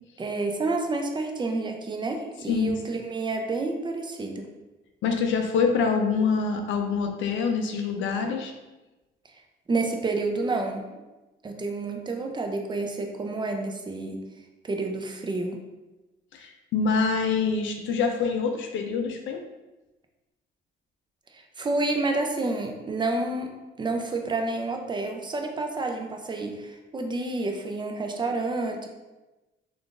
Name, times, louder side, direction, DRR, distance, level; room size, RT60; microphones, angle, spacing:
voice 1, 0.2-4.5 9.7-10.9 11.4-14.2 14.6-15.6 21.3-28.9, right 3 dB, 25° right, 3 dB, 0.4 m, -29 dB
voice 2, 5.0-8.5 16.3-19.4, left 5 dB, 75° left, 4 dB, 0.4 m, -25 dB
3.5 x 2.4 x 2.4 m, 1.1 s
cardioid pair, 90°, 20 cm